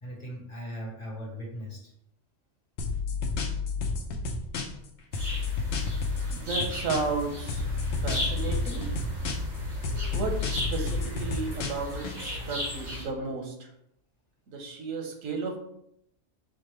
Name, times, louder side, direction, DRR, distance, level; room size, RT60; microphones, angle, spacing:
voice 1, 0.0-1.9 12.2-12.5, equal, 35° left, -3 dB, 1.3 m, -39 dB
sound 1, 2.8-4.9 5.1-7.2 7.5-9.6 9.8-12.1, left 4 dB, 80° left, 1.0 m, -31 dB
sound 2, 5.1-13.0, left 1 dB, 60° right, 2.2 m, -35 dB
voice 2, 6.3-7.7 8.0-8.9 10.1-13.7 14.5-15.6, right 4 dB, 90° right, 3 dB, 1.3 m, -33 dB
6.1 x 2.4 x 3.1 m, 0.74 s
omnidirectional pair, 1.3 m